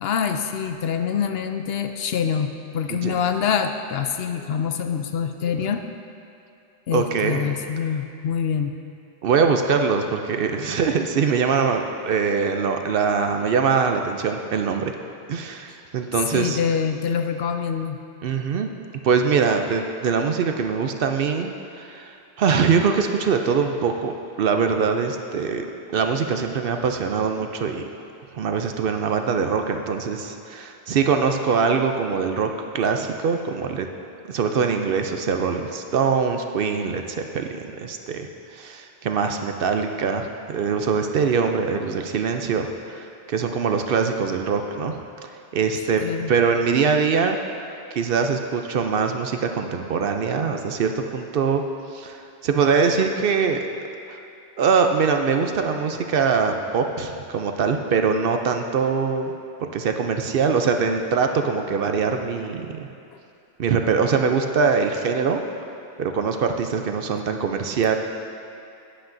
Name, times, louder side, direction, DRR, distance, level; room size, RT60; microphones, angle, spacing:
voice 1, 0.0-5.8 6.9-8.7 16.3-18.0 46.0-46.3, left 7 dB, 70° left, 7 dB, 0.8 m, -25 dB
voice 2, 6.9-7.5 9.2-14.9 15.3-16.6 18.2-18.7 19.0-21.5 21.8-25.6 25.9-27.9 28.3-32.5 32.7-33.9 34.3-38.3 38.5-47.4 47.9-51.6 51.9-53.7 54.1-54.2 54.6-59.3 59.6-62.9 63.6-65.4 66.0-68.0, right 5 dB, 65° right, 5 dB, 0.7 m, -23 dB
11.5 x 10.0 x 2.6 m, 2.6 s
omnidirectional pair, 1.1 m